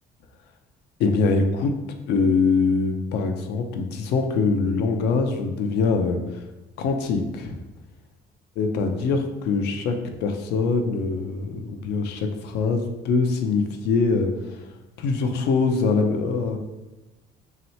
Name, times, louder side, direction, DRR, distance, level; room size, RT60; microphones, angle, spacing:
voice 1, 1.0-1.7 2.1-6.4 6.8-7.6 8.6-10.0 10.2-14.6 15.0-16.6, left 4 dB, 85° left, 5 dB, 0.5 m, -23 dB
3.1 x 2.9 x 4.2 m, 1.1 s
cardioid pair, 110°, 17 cm